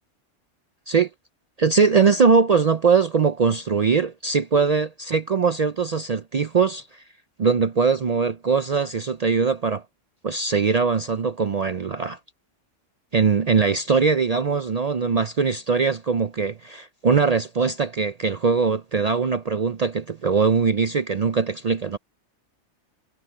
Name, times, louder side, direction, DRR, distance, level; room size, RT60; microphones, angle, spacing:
voice 1, 1.6-7.0 7.4-9.8 10.2-12.2 13.1-22.0, right 5 dB, 55° right, 0.4 m, -21 dB
omnidirectional pair, 1.3 m